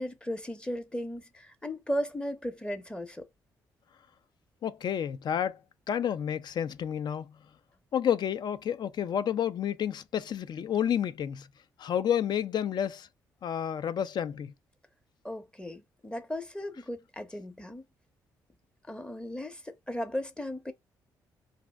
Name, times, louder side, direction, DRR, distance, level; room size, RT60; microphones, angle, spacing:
voice 1, 0.0-3.3 15.2-17.8 18.9-20.7, equal, 10° left, 0.7 m, -36 dB
voice 2, 4.6-5.6 5.9-7.3 7.9-11.5 11.8-13.1 13.4-14.5, left 9 dB, 55° left, 0.4 m, -30 dB
2.5 x 2.0 x 3.4 m
hypercardioid pair, 50°, 9 cm